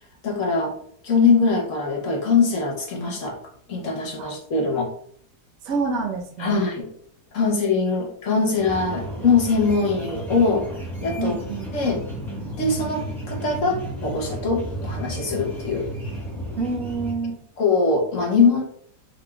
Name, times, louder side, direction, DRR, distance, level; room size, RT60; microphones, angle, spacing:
voice 1, 0.2-0.7 1.0-3.4 3.7-4.9 6.4-6.9 7.3-10.7 11.0-11.4 11.7-12.0 12.6-15.9 17.6-18.6, left 4 dB, 55° left, -1 dB, 1.3 m, -22 dB
voice 2, 5.6-6.6 11.2-11.7 16.6-17.4, right 4 dB, 60° right, -2 dB, 1.3 m, -27 dB
sound 1, 8.5-17.1, right 1 dB, ahead, 1.1 m, -33 dB
5.8 x 3.5 x 2.3 m, 0.62 s
omnidirectional pair, 1.7 m